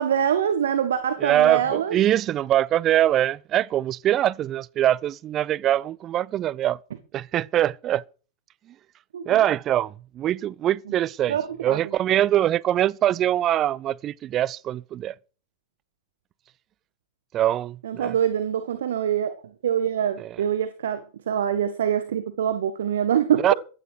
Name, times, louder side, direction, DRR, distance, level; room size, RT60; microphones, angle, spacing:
voice 1, 0.0-2.0 9.1-9.4 11.3-11.8 17.8-19.3 19.6-21.0 21.3-23.5, right 9 dB, 60° right, 1.6 m, -24 dB
voice 2, 1.2-6.8 7.1-8.0 9.3-11.4 11.6-15.1 17.3-18.1 20.2-20.4 23.4-23.5, right 12 dB, 30° right, 0.7 m, -23 dB
16.0 x 12.5 x 4.9 m
figure-of-eight pair, 90°, 0 cm